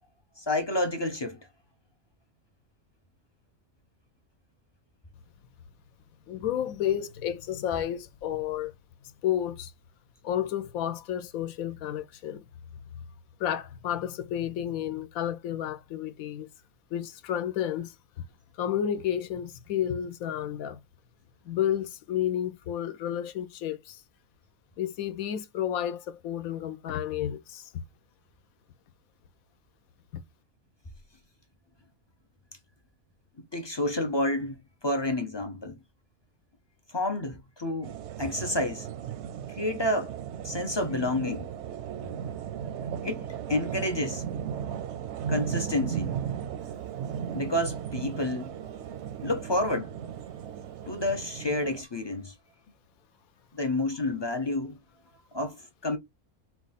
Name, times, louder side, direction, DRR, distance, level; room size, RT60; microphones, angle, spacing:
voice 1, 0.4-1.4 33.5-35.8 36.9-38.9 39.5-40.1 40.4-41.5 43.0-44.2 45.3-46.2 47.3-48.5 49.2-49.9 50.9-52.3 53.5-54.8 55.3-56.0, left 1 dB, 45° left, 0.3 m, -29 dB
voice 2, 6.3-8.7 9.2-9.7 10.2-12.4 13.4-16.5 16.9-18.2 18.6-20.8 21.5-24.0 24.8-27.7 30.1-30.2, left 10 dB, 80° left, 1.1 m, -31 dB
sound 1, 37.8-51.8, right 8 dB, 65° right, 0.7 m, -36 dB
4.3 x 2.4 x 4.0 m
omnidirectional pair, 1.5 m